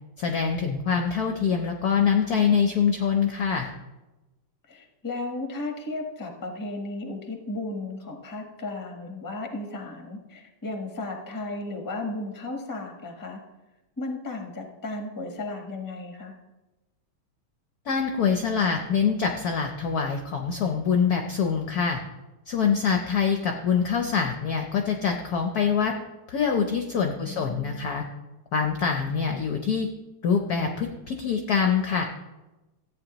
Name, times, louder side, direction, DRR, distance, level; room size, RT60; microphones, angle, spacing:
voice 1, 0.2-3.7 17.9-22.0 22.5-25.9 26.3-28.0 28.5-29.9 30.2-32.1, left 6 dB, 65° left, 4 dB, 0.9 m, -24 dB
voice 2, 4.7-13.4 14.0-16.3 27.0-27.9, left 2 dB, 15° left, 3 dB, 0.7 m, -35 dB
14.0 x 8.7 x 3.0 m, 1.1 s
omnidirectional pair, 2.4 m